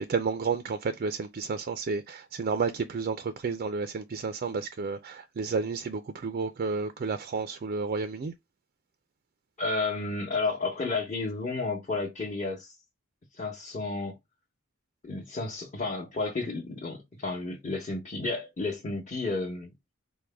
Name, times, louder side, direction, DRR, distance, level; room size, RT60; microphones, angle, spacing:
voice 1, 0.0-8.3, right 4 dB, 45° right, 0.4 m, -31 dB
voice 2, 9.6-12.7 13.3-14.2 15.0-19.7, left 3 dB, 35° left, 0.9 m, -32 dB
4.7 x 2.2 x 3.4 m
head